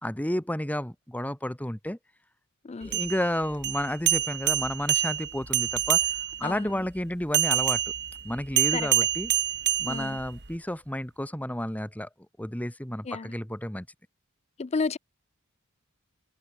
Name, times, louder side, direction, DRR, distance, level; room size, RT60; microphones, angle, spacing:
voice 1, 0.0-2.0 2.8-6.0 6.4-7.8 8.2-9.3 9.8-12.1 12.4-13.9, left 1 dB, 5° left, 1.6 m, -31 dB
voice 2, 2.6-3.0 6.4-6.7 8.7-8.9 9.9-10.2 13.1-13.3 14.6-15.0, left 4 dB, 30° left, 0.4 m, -31 dB
sound 1, 2.8-6.5 7.3-10.5, right 12 dB, 50° right, 1.8 m, -27 dB
head